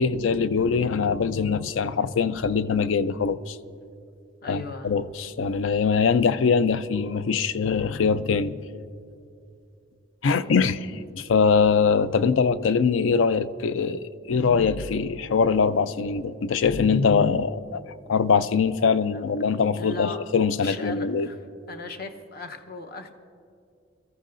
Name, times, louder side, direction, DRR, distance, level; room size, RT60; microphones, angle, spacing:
voice 1, 0.0-3.6 4.5-8.6 10.2-17.8 18.1-21.3, left 5 dB, 80° left, 0.4 m, -23 dB
voice 2, 4.4-4.9 10.3-10.8 18.8-19.2 19.8-20.2 20.6-21.4 21.7-23.1, left 3 dB, 50° left, 0.9 m, -38 dB
22.0 x 14.0 x 2.6 m
head